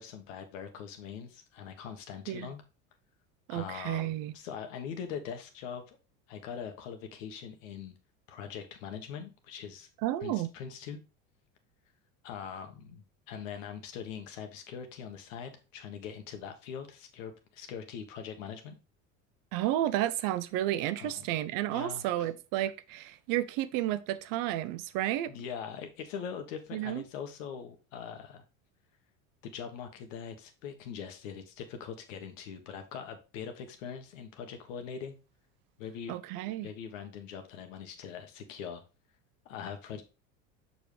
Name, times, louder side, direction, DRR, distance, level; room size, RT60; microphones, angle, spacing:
voice 1, 0.0-2.6 3.5-6.0 6.3-7.9 8.3-9.9 10.2-11.0 12.2-18.8 21.0-21.3 21.7-22.3 25.3-28.4 29.4-35.2 35.8-36.2 36.6-38.8 39.4-40.0, left 7 dB, 80° left, 1.4 m, -42 dB
voice 2, 3.5-4.3 10.0-10.5 19.5-25.3 26.7-27.0 36.1-36.7, right 13 dB, 60° right, 0.7 m, -31 dB
6.2 x 5.5 x 3.3 m
supercardioid pair, 95°, 38 cm